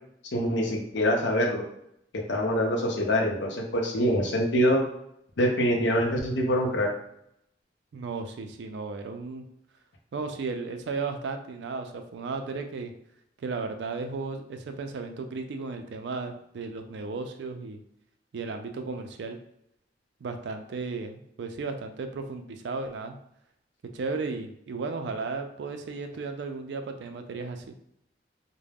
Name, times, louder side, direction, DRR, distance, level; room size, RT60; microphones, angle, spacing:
voice 1, 0.3-1.6 2.3-4.8 5.4-6.9, equal, 75° left, 0 dB, 0.6 m, -25 dB
voice 2, 7.9-9.4 10.1-12.9 13.4-17.8 18.3-19.4 20.2-23.2 23.9-27.6, right 4 dB, 70° right, 6 dB, 0.4 m, -34 dB
2.3 x 2.1 x 3.3 m, 0.75 s
head